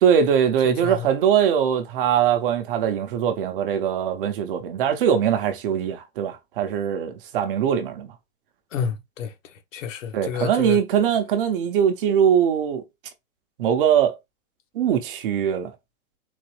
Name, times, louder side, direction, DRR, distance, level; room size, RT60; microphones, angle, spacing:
voice 1, 0.0-8.1 10.1-12.8 13.6-14.1 14.7-15.7, right 8 dB, 40° right, 0.8 m, -21 dB
voice 2, 0.6-1.1 8.7-9.3 9.7-10.8, left 7 dB, 65° left, 1.2 m, -30 dB
4.0 x 2.8 x 3.1 m
hypercardioid pair, 150°, 42 cm